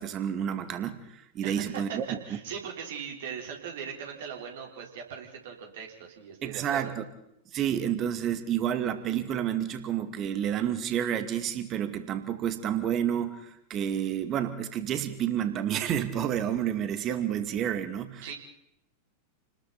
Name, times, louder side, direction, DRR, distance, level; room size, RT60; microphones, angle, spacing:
voice 1, 0.0-2.2 6.4-7.0 7.5-18.3, right 9 dB, 30° right, 9 dB, 2.3 m, -30 dB
voice 2, 1.4-2.0 2.3-6.9 18.2-18.3, right 7 dB, 55° right, 1 dB, 4.7 m, -40 dB
29.5 x 20.5 x 4.4 m, 0.79 s
figure-of-eight pair, 90°, 0 cm